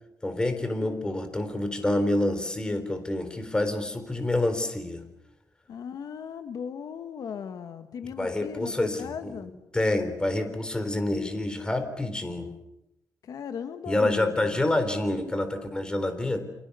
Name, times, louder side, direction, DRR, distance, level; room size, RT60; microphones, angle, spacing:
voice 1, 0.2-5.0 8.2-12.5 13.9-16.4, left 1 dB, 10° left, 8 dB, 3.8 m, -27 dB
voice 2, 5.7-9.5 13.2-14.6, left 7 dB, 60° left, 8 dB, 1.7 m, -37 dB
29.5 x 27.0 x 7.0 m, 0.87 s
wide cardioid pair, 160°, 7 cm